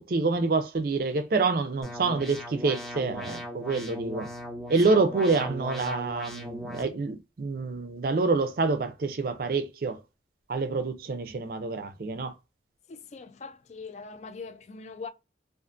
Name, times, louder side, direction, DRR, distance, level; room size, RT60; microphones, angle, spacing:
voice 1, 0.0-4.3 4.7-10.0 10.5-12.3, right 3 dB, 55° right, 0.4 m, -27 dB
sound 1, 1.8-6.8, equal, 5° left, 0.6 m, -39 dB
voice 2, 12.9-15.1, left 4 dB, 40° left, 0.3 m, -42 dB
2.4 x 2.4 x 2.4 m
head